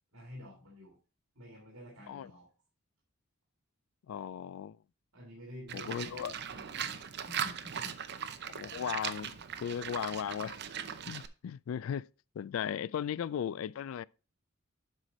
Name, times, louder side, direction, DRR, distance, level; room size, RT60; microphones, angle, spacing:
voice 1, 0.1-1.0 1.3-2.5 5.1-7.1 7.4-8.0, equal, 70° right, 2.4 m, -50 dB
voice 2, 4.1-4.8 5.7-6.3 8.5-9.4 9.6-10.6 11.1-12.1 12.4-14.0, left 8 dB, 70° left, 0.3 m, -36 dB
Livestock farm animals working animals, 5.7-11.3, right 8 dB, 55° right, 0.7 m, -39 dB
8.1 x 5.6 x 4.2 m
head